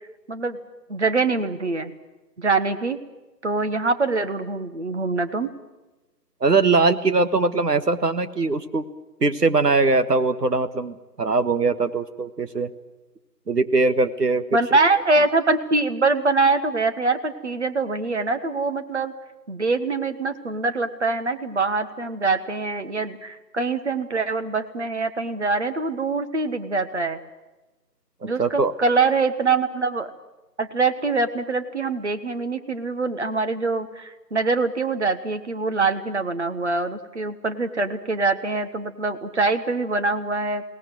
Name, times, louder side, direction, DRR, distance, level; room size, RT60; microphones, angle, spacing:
voice 1, 0.3-0.6 0.9-1.9 2.4-3.0 3.4-5.5 14.5-19.1 19.5-27.2 28.2-30.1 30.6-40.6, right 3 dB, 45° right, 10 dB, 1.4 m, -24 dB
voice 2, 6.4-8.8 9.2-12.7 13.5-14.6 28.4-28.7, right 3 dB, 70° right, 11 dB, 1.6 m, -21 dB
21.5 x 18.0 x 9.2 m, 1.1 s
figure-of-eight pair, 155°, 49 cm